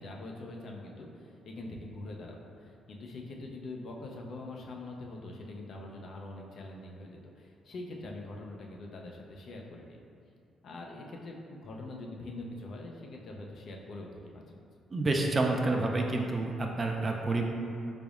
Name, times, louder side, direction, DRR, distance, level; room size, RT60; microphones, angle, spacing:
voice 1, 0.0-10.0 10.6-14.7, left 2 dB, 60° left, 0 dB, 0.5 m, -44 dB
voice 2, 14.9-17.4, right 2 dB, 30° right, 1 dB, 0.4 m, -29 dB
3.9 x 3.4 x 2.4 m, 2.4 s
cardioid pair, 90°, 0 cm